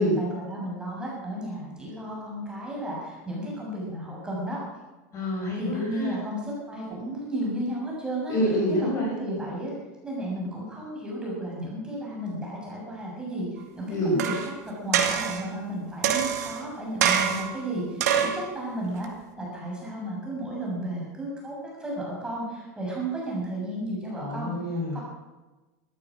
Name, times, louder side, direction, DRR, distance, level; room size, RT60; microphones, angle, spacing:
voice 1, 0.0-4.6 5.6-8.4 8.7-9.7 10.0-14.3 14.6-19.1 19.4-24.5 24.9-25.0, right 1 dB, 10° right, -4 dB, 6.9 m, -33 dB
voice 2, 5.1-6.2 8.3-9.1 13.9-14.2 24.1-25.0, equal, 40° left, -1 dB, 6.8 m, -27 dB
sound 1, 14.2-14.5 14.9-15.5 16.0-16.6 17.0-17.6 18.0-18.4 19.0-19.1, right 8 dB, 85° right, 2.3 m, -25 dB
14.0 x 14.0 x 6.3 m, 1.1 s
supercardioid pair, 125°, 9 cm